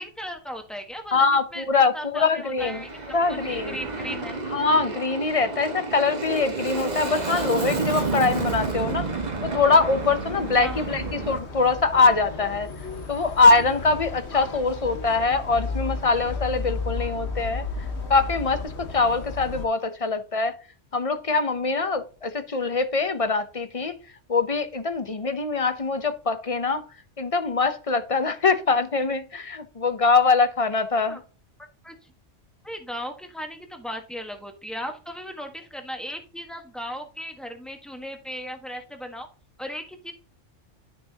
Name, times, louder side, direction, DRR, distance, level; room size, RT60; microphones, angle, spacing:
voice 1, 0.0-1.2 1.5-1.6 1.9-4.3 10.6-10.9 31.0-31.2 31.8-32.1 32.6-39.3 39.6-40.1, equal, ahead, 1.4 m, -36 dB
voice 2, 1.1-2.8 3.1-3.8 4.5-9.1 9.4-12.7 13.1-17.6 18.1-20.5 20.9-24.0 24.3-26.8 27.2-31.2, left 4 dB, 35° left, 0.8 m, -23 dB
Aircraft, 2.6-11.4, right 3 dB, 35° right, 1.3 m, -30 dB
sound 1, 8.3-19.7, left 3 dB, 65° left, 1.8 m, -34 dB
12.0 x 6.1 x 2.9 m
omnidirectional pair, 1.2 m